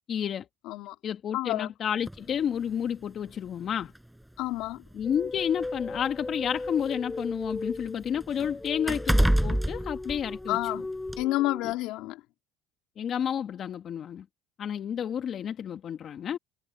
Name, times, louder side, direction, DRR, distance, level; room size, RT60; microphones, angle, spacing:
voice 1, 0.1-0.5 1.0-3.9 4.9-10.6 11.6-11.7 13.0-14.3 14.6-16.4, left 8 dB, 45° left, 1.8 m, -31 dB
voice 2, 0.6-1.0 1.3-1.7 4.4-4.8 10.5-10.9 11.2-12.2, left 18 dB, 75° left, 2.7 m, -29 dB
sound 1, 2.1-2.2 3.3-3.4 3.8-4.0 4.9-6.9 7.3-10.7 11.1-11.2, right 1 dB, 5° right, 6.6 m, -28 dB
sound 2, 5.0-11.7, left 2 dB, 10° left, 7.7 m, -37 dB
supercardioid pair, 105°, 0 cm